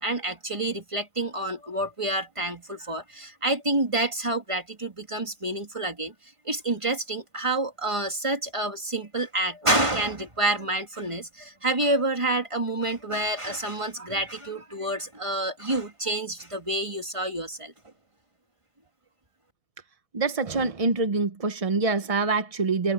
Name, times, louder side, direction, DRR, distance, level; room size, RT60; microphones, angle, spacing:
voice 1, 0.0-6.1 6.4-17.7, right 2 dB, 15° right, 2.4 m, -28 dB
voice 2, 20.1-22.9, right 3 dB, 45° right, 0.4 m, -25 dB
omnidirectional pair, 1.8 m